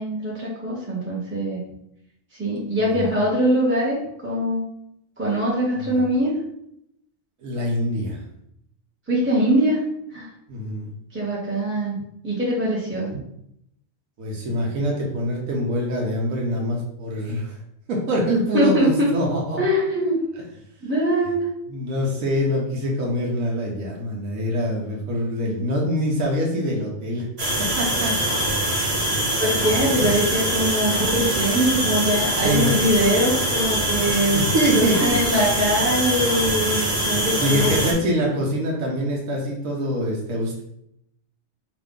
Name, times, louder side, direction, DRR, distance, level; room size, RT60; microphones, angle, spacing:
voice 1, 0.0-1.6 2.4-4.0 4.2-4.6 5.2-6.3 9.1-9.8 10.1-10.3 11.1-12.0 12.2-13.1 18.5-19.1 19.6-20.2 20.8-21.5 29.4-34.4 34.7-37.7, equal, 10° right, -7 dB, 0.7 m, -22 dB
voice 2, 2.8-3.1 5.8-6.0 7.4-8.2 10.5-10.9 14.2-17.6 17.9-19.6 20.3-20.4 21.7-27.3 27.6-28.2 29.9-30.1 32.4-32.7 34.0-35.4 36.9-40.6, equal, 85° right, -2 dB, 1.2 m, -25 dB
sound 1, 27.4-37.9, right 1 dB, 50° right, 1.4 m, -23 dB
4.9 x 2.5 x 3.6 m, 0.76 s
omnidirectional pair, 1.4 m